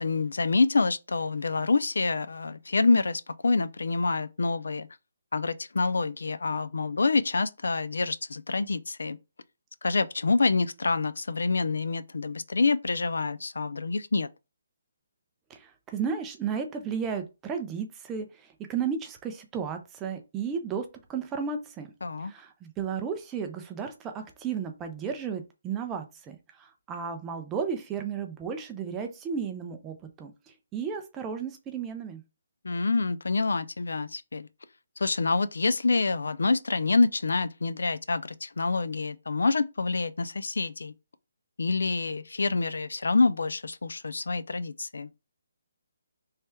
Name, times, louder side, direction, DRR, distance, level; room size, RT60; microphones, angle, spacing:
voice 1, 0.0-4.9 5.3-9.2 9.8-14.3 22.0-22.3 32.6-34.5 35.0-40.9 41.6-45.1, left 3 dB, 85° left, 0.4 m, -27 dB
voice 2, 15.5-21.9 22.2-30.3 30.7-32.2, right 6 dB, 10° right, 0.3 m, -34 dB
3.2 x 2.3 x 4.3 m
hypercardioid pair, 175°, 0 cm